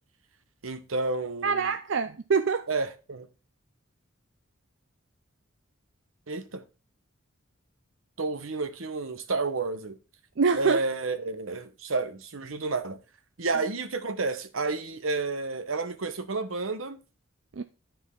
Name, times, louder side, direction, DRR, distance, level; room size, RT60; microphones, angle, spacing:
voice 1, 0.6-1.7 2.7-3.3 6.3-6.6 8.2-10.0 10.6-13.0 13.4-17.0, right 3 dB, 80° right, 1.0 m, -31 dB
voice 2, 1.4-2.7 10.4-10.8 17.6-17.7, right 5 dB, 60° right, 0.5 m, -25 dB
10.5 x 4.5 x 3.7 m
head